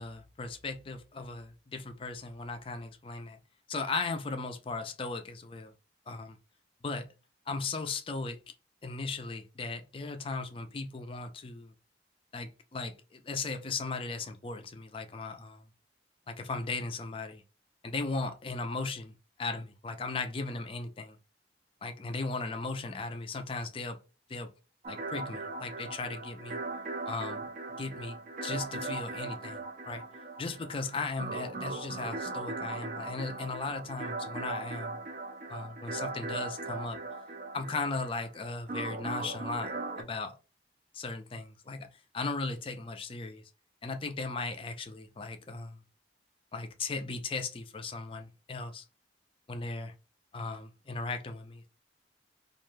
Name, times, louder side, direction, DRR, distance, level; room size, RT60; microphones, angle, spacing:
voice 1, 0.0-3.4 3.7-5.7 6.1-6.4 6.8-7.1 7.5-8.4 8.8-11.7 12.3-15.6 16.3-17.4 17.8-19.1 19.4-21.2 21.8-24.0 24.3-24.5 24.9-26.6 27.1-27.5 27.8-28.2 28.4-30.0 30.4-35.0 35.5-37.0 37.5-40.4 40.9-41.9 42.1-43.4 43.8-45.8 46.5-48.8 49.5-49.9 50.3-51.7, left 3 dB, 30° left, 0.4 m, -37 dB
sound 1, 24.8-40.0, right 3 dB, 45° right, 0.4 m, -39 dB
2.4 x 2.2 x 3.1 m
head